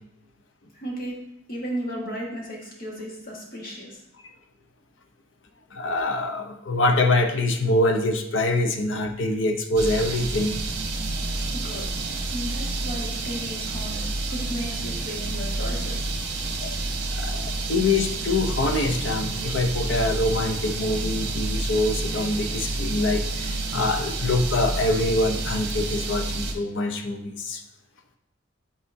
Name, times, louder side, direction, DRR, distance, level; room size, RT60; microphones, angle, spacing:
voice 1, 0.7-1.2 1.5-4.0 11.5-11.9 12.3-16.1, equal, 50° left, -3 dB, 1.6 m, -35 dB
voice 2, 5.7-10.6 16.6-16.8 17.1-27.6, left 2 dB, 70° left, 6 dB, 0.6 m, -25 dB
sound 1, 9.8-26.5, right 2 dB, 60° right, 0.9 m, -29 dB
8.3 x 4.2 x 2.7 m, 0.80 s
head